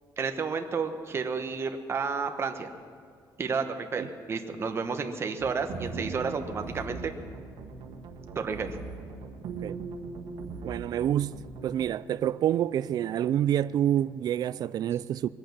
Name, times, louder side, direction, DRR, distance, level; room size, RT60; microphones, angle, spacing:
voice 1, 0.2-2.7 3.4-7.1 8.3-8.8, right 5 dB, 30° right, 1.0 m, -31 dB
sound 1, 5.4-11.9, right 4 dB, 90° right, 1.6 m, -40 dB
voice 2, 10.6-15.3, right 11 dB, 55° right, 0.4 m, -28 dB
21.5 x 8.8 x 7.3 m
cardioid pair, 165°, 8 cm